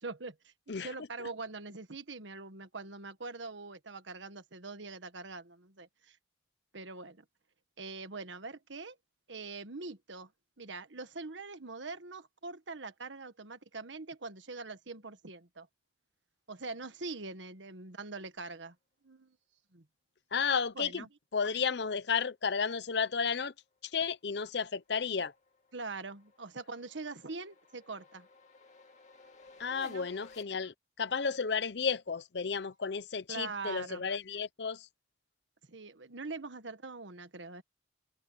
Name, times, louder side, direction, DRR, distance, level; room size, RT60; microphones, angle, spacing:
voice 1, 0.0-0.5 0.8-6.2 6.7-7.2 7.8-9.0 9.3-10.3 10.6-15.7 16.5-18.7 19.0-19.4 19.7-19.8 20.7-21.1 25.7-28.3 29.7-30.1 33.3-34.0 35.7-37.6, right 3 dB, 80° right, 1.5 m, -43 dB
voice 2, 0.7-1.3 20.3-21.0 21.3-23.5 23.8-25.3 29.6-34.9, left 5 dB, 65° left, 0.7 m, -33 dB
sound 1, 23.8-30.4, left 3 dB, 40° left, 2.7 m, -59 dB
head